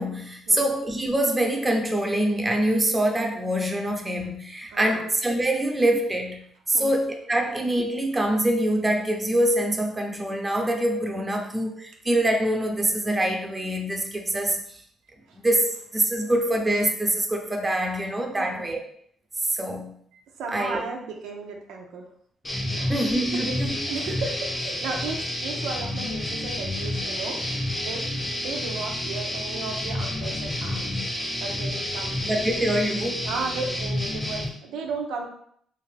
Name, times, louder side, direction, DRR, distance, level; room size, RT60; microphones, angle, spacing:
voice 1, 0.0-6.4 6.7-14.8 15.4-18.8 19.4-19.9 20.5-20.8 22.9-23.7 32.2-33.3, right 1 dB, 20° right, 3 dB, 0.5 m, -25 dB
voice 2, 4.7-5.0 6.7-7.0 15.3-15.4 18.4-18.7 20.1-22.1 22.7-22.9 23.5-28.0 28.3-30.9 31.4-32.6 33.2-35.3, right 4 dB, 90° right, 1 dB, 0.4 m, -35 dB
sound 1, 22.5-34.5, left 1 dB, 20° left, 0.7 m, -29 dB
2.5 x 2.5 x 3.2 m, 0.66 s
cardioid pair, 90°, 0 cm